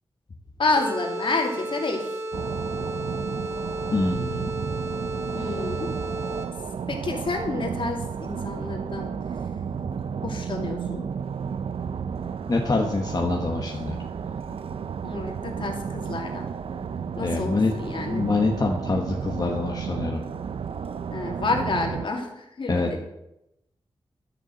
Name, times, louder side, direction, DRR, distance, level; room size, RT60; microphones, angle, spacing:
voice 1, 0.6-2.2 5.3-5.9 6.9-9.1 10.2-11.1 15.0-16.4 17.2-18.2 21.1-23.0, left 3 dB, 60° left, 1 dB, 2.5 m, -29 dB
sound 1, 0.8-6.7, right 1 dB, 30° right, 1.7 m, -33 dB
sound 2, 2.3-22.1, right 7 dB, 75° right, 0.5 m, -32 dB
voice 2, 3.9-4.5 12.5-14.0 17.2-17.7 18.0-20.2 22.7-22.9, left 3 dB, 40° left, 0 dB, 1.3 m, -25 dB
12.5 x 6.9 x 7.8 m, 0.85 s
wide cardioid pair, 150°, 10 cm